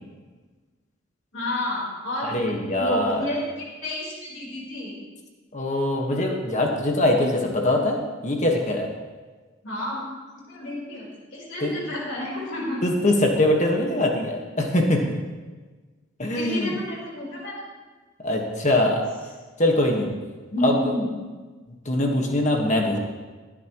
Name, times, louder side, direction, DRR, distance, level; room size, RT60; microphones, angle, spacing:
voice 1, 1.3-2.3 2.8-4.9 9.6-10.0 10.3-12.8 16.3-17.5 20.5-21.1, left 1 dB, 70° left, -4 dB, 4.1 m, -30 dB
voice 2, 2.3-3.2 5.5-8.0 8.2-8.9 11.6-11.7 12.8-15.0 16.2-16.7 18.2-19.1 19.6-20.1 20.6-20.9 21.8-23.0, left 1 dB, 40° left, 1 dB, 1.5 m, -22 dB
20.0 x 10.0 x 3.1 m, 1.3 s
head